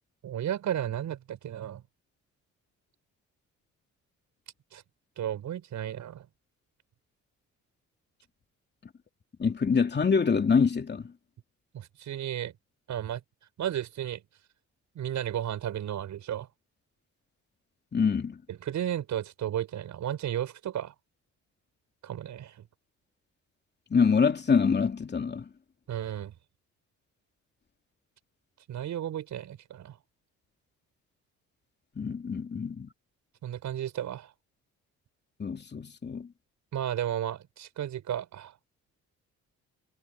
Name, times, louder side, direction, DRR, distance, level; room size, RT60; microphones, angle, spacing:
voice 1, 0.2-1.8 4.7-4.8 5.2-6.2 11.7-12.5 12.9-13.2 13.6-14.2 14.9-16.5 18.5-20.9 22.0-22.6 25.9-26.3 28.7-30.0 33.4-34.3 36.7-38.5, right 11 dB, 70° right, 6.6 m, -33 dB
voice 2, 9.4-11.1 17.9-18.4 23.9-25.5 32.0-32.9 35.4-36.3, left 5 dB, 35° left, 2.9 m, -25 dB
cardioid pair, 90°, 30 cm